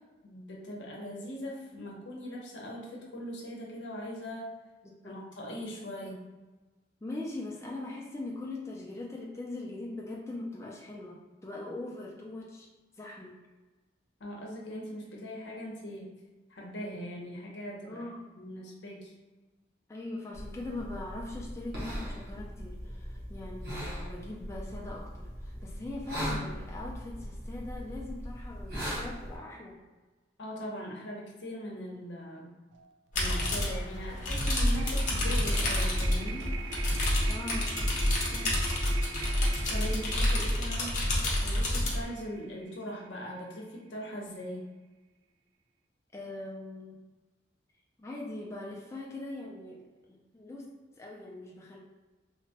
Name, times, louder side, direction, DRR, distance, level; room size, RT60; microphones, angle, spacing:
voice 1, 0.2-4.5 5.0-6.2 14.2-16.1 16.5-19.1 30.4-32.5 33.1-36.5 39.7-41.0 41.4-44.7, equal, 75° left, -2 dB, 0.7 m, -40 dB
voice 2, 4.8-5.1 6.0-6.2 7.0-12.7 13.0-13.4 17.8-18.3 19.9-29.8 37.2-38.0 38.3-38.6 46.1-47.0 48.0-51.8, left 2 dB, 15° left, -3 dB, 0.3 m, -41 dB
sound 1, 20.3-29.4, equal, 60° right, 0.9 m, -39 dB
sound 2, 32.7-32.9 33.2-43.4, right 6 dB, 75° right, 0.3 m, -44 dB
sound 3, 33.1-42.0, left 1 dB, 45° left, 0.7 m, -28 dB
2.9 x 2.1 x 2.7 m, 1.2 s
head